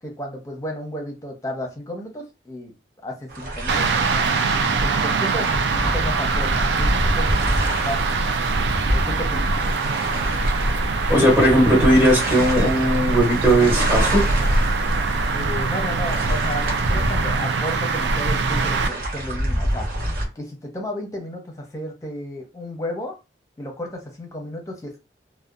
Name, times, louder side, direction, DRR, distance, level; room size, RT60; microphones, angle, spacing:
voice 1, 0.0-2.7 3.0-4.3 4.8-8.2 8.9-9.5 15.3-19.9 20.4-23.1 23.6-25.0, equal, 20° left, 1 dB, 0.7 m, -33 dB
sound 1, 3.3-20.3, right 1 dB, 55° right, 0.7 m, -29 dB
sound 2, 3.7-18.9, right 3 dB, 80° right, 0.4 m, -22 dB
voice 2, 11.1-14.2, right 1 dB, 10° right, -4 dB, 1.0 m, -17 dB
2.7 x 2.1 x 2.4 m, 0.27 s
head